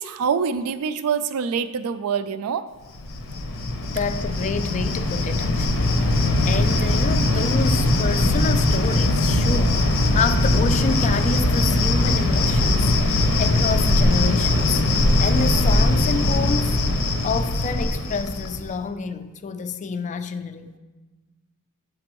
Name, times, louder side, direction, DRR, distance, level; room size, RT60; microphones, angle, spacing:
voice 1, 0.0-2.6, right 6 dB, 80° right, 13 dB, 0.4 m, -25 dB
Cricket, 3.0-18.7, left 1 dB, 65° left, 0.7 m, -20 dB
voice 2, 3.8-14.8 15.2-16.8 17.2-20.7, left 5 dB, 35° left, 10 dB, 0.3 m, -28 dB
7.6 x 5.2 x 3.0 m, 1.2 s
head